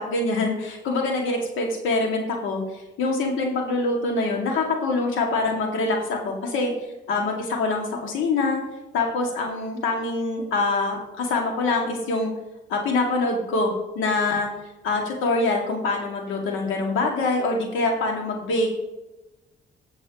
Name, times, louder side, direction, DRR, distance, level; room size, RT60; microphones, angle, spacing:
voice 1, 0.0-6.7 7.1-8.6 8.9-12.3 12.7-14.5 14.8-18.8, left 3 dB, 85° left, 1 dB, 2.2 m, -24 dB
16.5 x 7.0 x 3.0 m, 1.0 s
cardioid pair, 90°, 20 cm